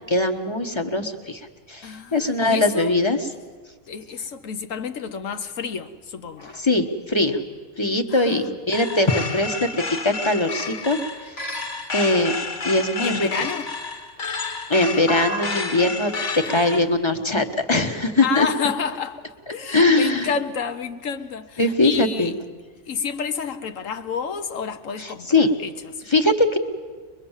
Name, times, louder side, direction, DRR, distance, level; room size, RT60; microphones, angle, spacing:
voice 1, 0.1-1.4 1.7-3.2 6.5-7.4 7.8-9.7 10.0-11.0 11.2-11.3 11.9-12.3 12.6-13.3 14.7-16.1 16.5-18.5 19.7-20.3 21.6-22.3 25.0-25.5 26.1-26.6, left 2 dB, 25° left, 1.2 m, -21 dB
voice 2, 1.8-3.0 3.9-6.5 8.1-8.4 13.0-13.7 16.4-17.0 18.2-22.4 22.9-25.9, left 6 dB, 90° left, 1.4 m, -30 dB
sound 1, 8.7-16.8, left 3 dB, 65° left, 2.0 m, -30 dB
23.0 x 22.5 x 7.3 m
omnidirectional pair, 1.3 m